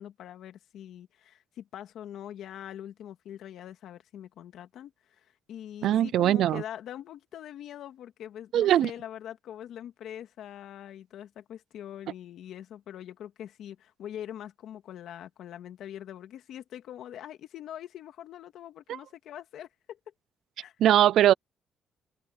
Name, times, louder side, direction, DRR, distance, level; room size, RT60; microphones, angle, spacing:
voice 1, 0.0-20.0 20.6-20.7, left 10 dB, 75° left, 2.2 m, -43 dB
voice 2, 5.8-6.6 8.5-8.9 20.8-21.3, right 12 dB, 75° right, 0.4 m, -21 dB
open air
cardioid pair, 90°, 0 cm